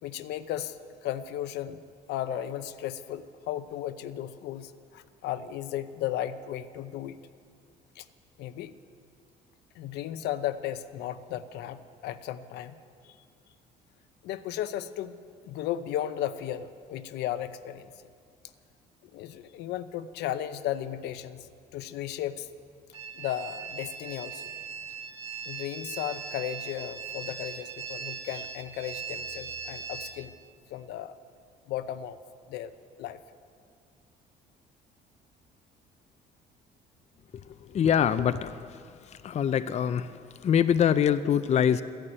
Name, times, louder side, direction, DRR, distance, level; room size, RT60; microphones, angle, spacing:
voice 1, 0.0-1.8 2.1-7.2 8.0-8.1 8.4-8.7 9.7-12.7 13.0-13.2 14.2-15.2 15.4-17.9 19.0-22.5 23.1-24.5 25.5-30.3 30.7-31.2 31.7-32.2 32.5-32.7 33.0-33.2, left 11 dB, 80° left, 11 dB, 0.8 m, -35 dB
sound 1, 22.9-30.2, right 6 dB, 35° right, 1.6 m, -39 dB
voice 2, 37.7-38.6 39.2-40.1 40.4-41.8, left 8 dB, 40° left, 12 dB, 0.6 m, -24 dB
14.0 x 11.0 x 9.0 m, 2.2 s
cardioid pair, 110°, 17 cm